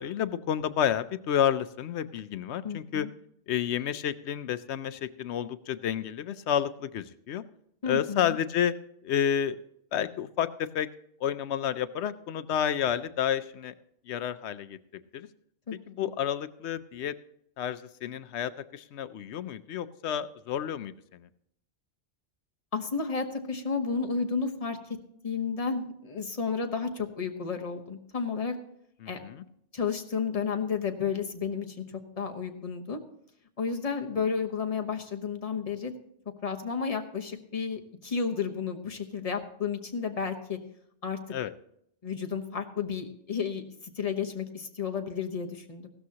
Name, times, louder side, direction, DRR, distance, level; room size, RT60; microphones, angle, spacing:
voice 1, 0.0-3.1 3.5-7.4 7.8-8.7 9.0-9.6 9.9-10.9 11.2-13.7 14.1-14.8 15.1-15.3 15.9-17.1 17.6-21.3 29.0-29.4 41.3-41.5, left 9 dB, 75° left, 14 dB, 0.9 m, -30 dB
voice 2, 2.6-3.1 7.8-8.4 15.7-16.1 22.7-25.0 25.2-28.6 29.1-29.4 29.7-31.8 32.2-33.0 33.6-35.9 36.4-40.6 41.0-41.2 42.0-45.9, left 5 dB, 35° left, 4 dB, 1.1 m, -32 dB
15.5 x 12.5 x 2.8 m, 0.73 s
omnidirectional pair, 1.2 m